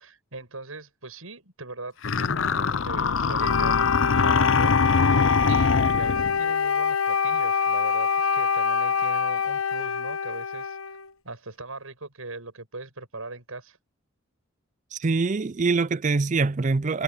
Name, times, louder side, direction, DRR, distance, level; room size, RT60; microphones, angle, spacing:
voice 1, 0.0-3.9 4.2-5.0 5.5-10.8 11.2-13.8, right 3 dB, 90° right, 7.7 m, -40 dB
sound 1, 2.0-6.4, left 5 dB, 65° left, 0.6 m, -23 dB
Wind instrument woodwind instrument, 3.4-11.1, left 6 dB, 80° left, 1.1 m, -25 dB
voice 2, 14.9-17.0, right 4 dB, 35° right, 0.5 m, -24 dB
head